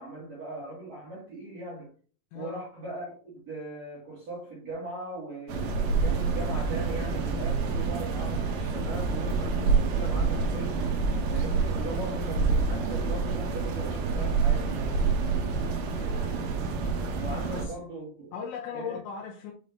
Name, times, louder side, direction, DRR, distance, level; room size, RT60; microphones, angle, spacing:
voice 1, 0.0-1.9 2.3-10.8 11.3-15.0 17.2-18.3 18.7-19.0, right 2 dB, 50° right, 2.1 m, -39 dB
sound 1, 5.5-17.7, right 4 dB, 80° right, 3.8 m, -27 dB
voice 2, 15.9-16.5 17.5-17.8 18.3-19.5, left 6 dB, 90° left, 2.6 m, -38 dB
9.8 x 3.6 x 2.6 m
omnidirectional pair, 6.0 m